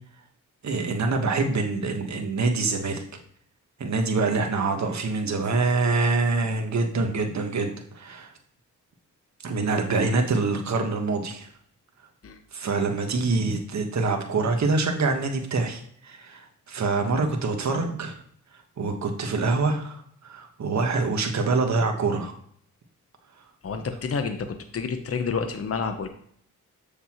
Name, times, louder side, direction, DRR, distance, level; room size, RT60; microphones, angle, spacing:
voice 1, 0.6-3.0 3.8-8.3 9.4-11.5 12.5-18.2 18.8-22.3, right 3 dB, 55° right, 3 dB, 1.3 m, -25 dB
voice 2, 23.6-26.1, left 5 dB, 45° left, 7 dB, 0.9 m, -29 dB
7.2 x 6.6 x 3.0 m, 0.64 s
cardioid pair, 70°, 33 cm